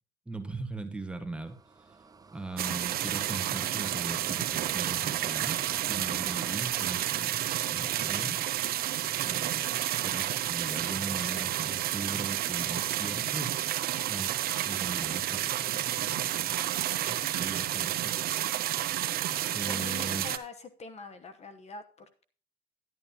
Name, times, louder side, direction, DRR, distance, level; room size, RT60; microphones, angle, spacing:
voice 1, 0.2-2.0 2.3-5.6 5.9-8.4 9.2-13.6 14.1-18.9 19.5-20.3, right 2 dB, 5° right, 6 dB, 1.4 m, -40 dB
sound 1, 1.5-6.6, right 4 dB, 20° right, 0.7 m, -48 dB
sound 2, 2.6-20.4, right 12 dB, 65° right, 0.8 m, -30 dB
voice 2, 19.7-22.2, left 4 dB, 40° left, 10 dB, 1.0 m, -44 dB
11.0 x 11.0 x 2.9 m, 0.41 s
cardioid pair, 110°, 17 cm